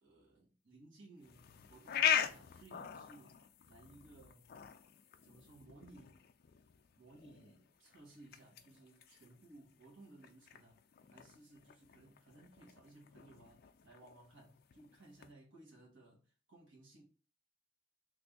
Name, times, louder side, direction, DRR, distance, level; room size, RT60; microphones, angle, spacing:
voice 1, 0.0-3.4 3.7-4.5 5.2-6.2 7.0-10.8 11.1-17.0, right 2 dB, 90° right, 1.2 m, -60 dB
sound 1, 1.2-15.3, left 9 dB, 55° left, 0.3 m, -42 dB
3.3 x 2.5 x 3.4 m
head